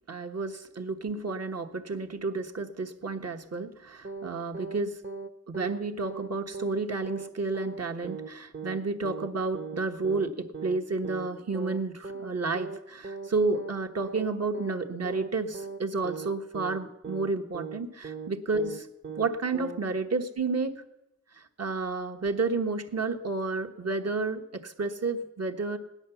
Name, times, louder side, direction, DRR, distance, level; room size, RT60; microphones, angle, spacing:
voice 1, 0.1-5.0 5.5-18.9 19.2-20.8 21.3-25.8, right 3 dB, 55° right, 4 dB, 1.3 m, -31 dB
sound 1, 4.0-4.3 4.5-4.8 5.0-5.3 5.5-5.8 6.0-6.3 6.5-6.8 7.0-7.3 7.5-7.8 8.0-8.3 8.5-8.8 9.0-9.3 9.5-9.8 10.0-10.3 10.5-10.8 11.0-11.3 11.5-11.8 12.0-12.3 12.5-12.8 13.0-13.3 13.5-13.8 14.0-14.3 14.5-14.8 15.0-15.3 15.5-16.3 16.5-16.8 17.0-17.3 17.5-17.8 18.0-18.3 18.5-18.8 19.0-19.3 19.5-19.8, right 4 dB, 40° right, 0.9 m, -38 dB
18.0 x 10.5 x 7.0 m, 0.94 s
wide cardioid pair, 90°, 31 cm